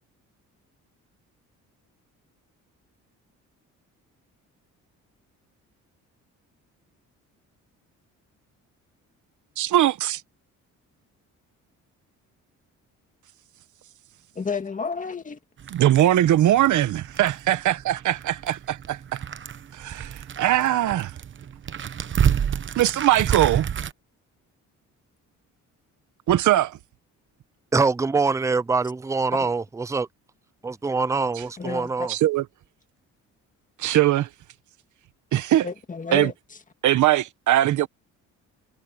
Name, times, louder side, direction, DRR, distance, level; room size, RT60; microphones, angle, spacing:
voice 1, 9.6-10.2 15.7-19.2 19.7-21.1 22.8-23.7 26.3-26.8 31.4-31.5 32.1-32.4 33.8-34.3 35.3-35.7 36.1-36.3 36.8-37.9, right 13 dB, 70° right, 1.2 m, -21 dB
voice 2, 14.4-15.4 29.4-29.5 31.6-32.1 35.6-36.3, left 5 dB, 25° left, 2.1 m, -31 dB
sound 1, 15.6-23.9, right 8 dB, 40° right, 0.9 m, -29 dB
voice 3, 27.7-30.1 30.6-32.1, right 4 dB, 10° right, 0.5 m, -24 dB
cardioid pair, 110°, 31 cm